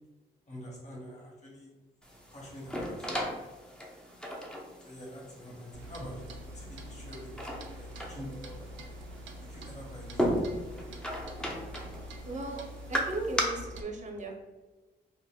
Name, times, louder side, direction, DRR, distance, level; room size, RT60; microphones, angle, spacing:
voice 1, 0.5-1.7 2.3-3.5 4.8-8.7 9.4-10.4, equal, 40° left, -4 dB, 1.0 m, -46 dB
sound 1, 2.0-13.4, equal, 5° left, 0.5 m, -37 dB
Clock, 5.7-13.8, equal, 80° right, 0.4 m, -45 dB
voice 2, 12.2-12.6 12.9-14.4, right 2 dB, 40° right, 1 dB, 0.6 m, -36 dB
2.2 x 2.1 x 3.4 m, 1.2 s
cardioid pair, 60°, 19 cm